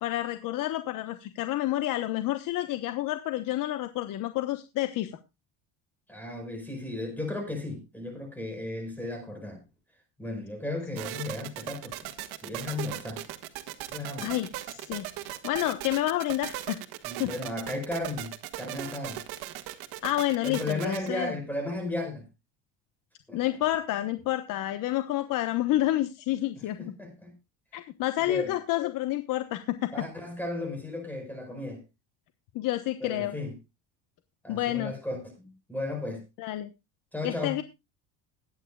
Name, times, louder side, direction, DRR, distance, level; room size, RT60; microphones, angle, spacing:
voice 1, 0.0-5.1 14.2-16.8 17.2-17.3 20.0-21.3 23.3-26.9 27.7-30.0 32.5-33.4 34.5-34.9 36.4-36.7 37.2-37.6, left 15 dB, 55° left, 1.1 m, -29 dB
voice 2, 6.1-9.6 10.2-12.1 12.4-13.2 13.9-14.3 17.0-18.3 18.6-19.2 20.4-22.2 23.3-23.4 26.8-27.3 28.2-28.5 29.9-31.8 33.0-33.5 34.4-36.2 37.1-37.6, left 2 dB, 5° left, 4.8 m, -35 dB
sound 1, 11.0-21.1, right 15 dB, 75° right, 1.8 m, -38 dB
21.5 x 9.5 x 2.3 m
cardioid pair, 135°, 37 cm